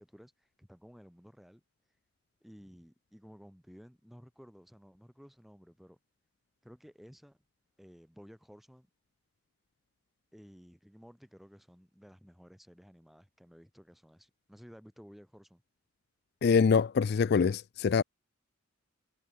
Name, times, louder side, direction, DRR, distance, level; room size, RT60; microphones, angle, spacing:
voice 1, 0.0-1.6 2.4-6.0 6.6-7.4 7.8-8.9 10.3-15.6, equal, ahead, 6.5 m, -55 dB
voice 2, 16.4-18.0, left 5 dB, 50° left, 0.3 m, -24 dB
head